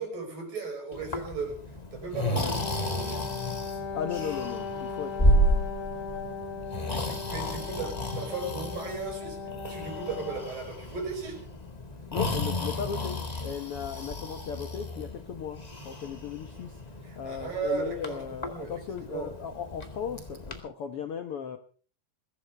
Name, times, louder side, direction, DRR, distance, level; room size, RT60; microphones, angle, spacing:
voice 1, 0.0-1.6 1.9-3.2 6.7-11.4 17.0-18.7 19.1-19.3, right 4 dB, 70° right, 7.1 m, -36 dB
Breathing, 0.9-20.6, equal, 20° left, 1.0 m, -32 dB
Wind instrument woodwind instrument, 2.5-10.6, left 4 dB, 55° left, 3.5 m, -38 dB
voice 2, 3.9-5.5 12.1-21.6, left 7 dB, 75° left, 1.3 m, -37 dB
22.0 x 15.5 x 3.4 m
omnidirectional pair, 4.1 m